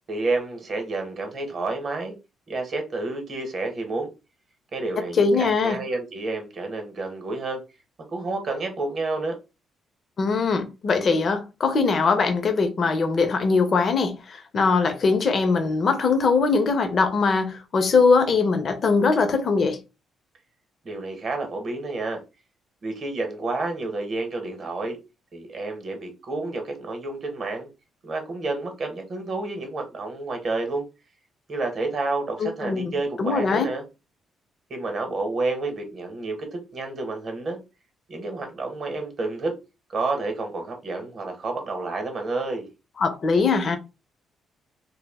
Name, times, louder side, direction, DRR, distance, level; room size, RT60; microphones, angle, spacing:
voice 1, 0.1-2.2 2.5-4.1 4.7-7.6 8.1-9.4 20.8-22.2 22.8-25.0 25.3-27.7 28.0-30.8 31.5-33.8 34.7-37.6 38.1-39.5 39.9-42.7, right 3 dB, 45° right, 0.8 m, -29 dB
voice 2, 5.2-5.8 10.2-19.8 32.4-33.7 43.0-43.8, left 4 dB, 50° left, 0.6 m, -21 dB
2.3 x 2.0 x 3.4 m
cardioid pair, 90°, 0 cm